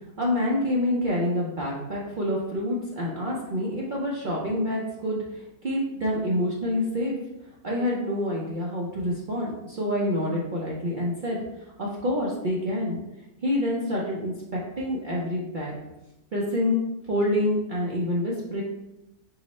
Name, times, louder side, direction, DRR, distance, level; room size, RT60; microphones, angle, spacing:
voice 1, 0.2-7.1 7.6-11.4 11.8-13.0 13.4-15.7 16.3-16.8 17.1-18.6, left 1 dB, 75° right, -4 dB, 0.4 m, -27 dB
4.7 x 2.0 x 4.2 m, 0.93 s
omnidirectional pair, 1.6 m